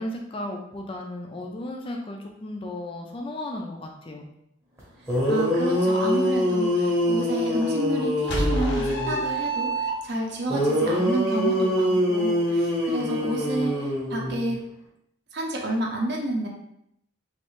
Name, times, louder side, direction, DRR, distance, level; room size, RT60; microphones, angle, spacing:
voice 1, 0.0-4.3, left 1 dB, 25° left, 1 dB, 0.3 m, -35 dB
sound 1, 4.8-4.9 5.1-9.2 10.5-14.5, equal, 15° right, 0.8 m, -24 dB
voice 2, 5.3-14.6 15.3-16.5, right 1 dB, 55° right, -1 dB, 0.6 m, -30 dB
sound 2, 8.3-10.4, right 2 dB, 55° left, 0.7 m, -27 dB
3.1 x 2.4 x 3.1 m, 0.76 s
head